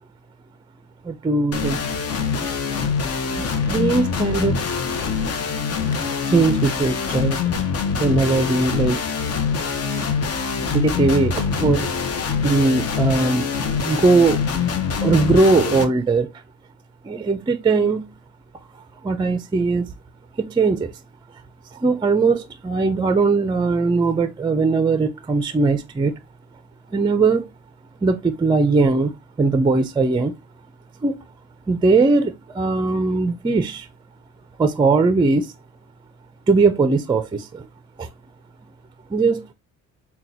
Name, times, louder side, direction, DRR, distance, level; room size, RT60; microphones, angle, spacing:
voice 1, 1.0-1.8 3.3-4.7 5.9-7.4 8.0-9.0 10.7-11.9 12.4-13.5 13.8-14.4 15.0-16.3 17.0-18.0 19.0-19.9 20.4-20.9 21.7-26.1 26.9-27.5 28.0-29.1 29.4-30.3 31.0-31.2 31.7-33.9 34.6-35.5 36.5-37.7 38.0-38.1 39.1-39.4, right 3 dB, 15° right, 0.4 m, -19 dB
sound 1, 1.5-15.8, left 5 dB, 55° left, 0.8 m, -24 dB
5.8 x 2.2 x 2.6 m
cardioid pair, 90°, 30 cm